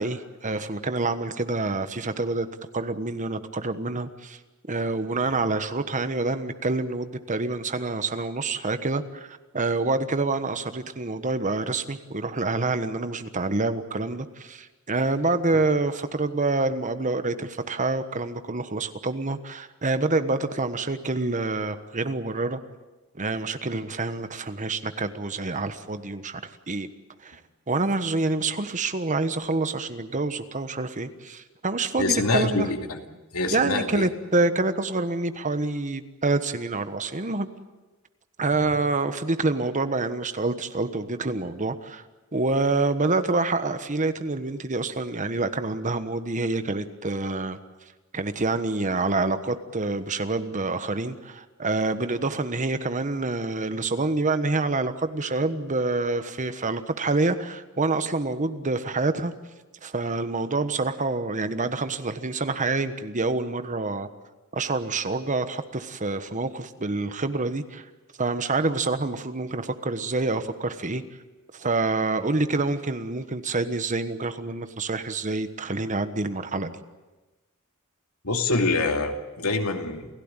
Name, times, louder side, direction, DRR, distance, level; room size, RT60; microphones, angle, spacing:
voice 1, 0.0-2.5 2.7-4.4 4.7-22.6 23.1-26.9 27.2-27.4 27.7-32.7 33.5-37.5 38.4-42.0 42.3-47.6 48.1-59.3 59.8-64.1 64.5-67.8 68.2-71.0 71.5-76.8, right 3 dB, 35° right, 10 dB, 1.3 m, -27 dB
voice 2, 32.0-33.0 33.3-34.1 38.6-38.7 78.2-80.1, left 3 dB, 85° left, 4 dB, 2.6 m, -25 dB
29.0 x 16.0 x 9.0 m, 1.2 s
head